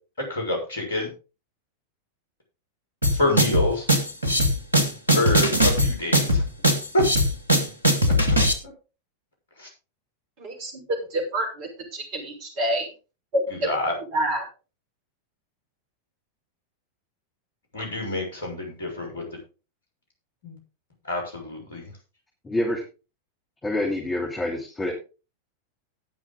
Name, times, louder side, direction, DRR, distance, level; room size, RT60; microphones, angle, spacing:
voice 1, 0.2-1.1 3.1-3.9 5.1-6.4 6.9-7.0 8.6-8.7 9.6-9.7 13.6-14.0 17.7-19.2 20.4-20.6 21.0-21.9, left 1 dB, 65° left, 1 dB, 5.8 m, -27 dB
sound 1, 3.0-8.5, equal, 85° right, 1.8 m, -20 dB
voice 2, 10.4-12.9 13.3-13.4 14.1-14.5, right 1 dB, 40° right, 1 dB, 5.3 m, -27 dB
voice 3, 22.4-22.8 23.6-24.9, left 1 dB, 15° left, -1 dB, 3.1 m, -26 dB
18.5 x 6.2 x 3.8 m, 0.32 s
figure-of-eight pair, 90°, 0 cm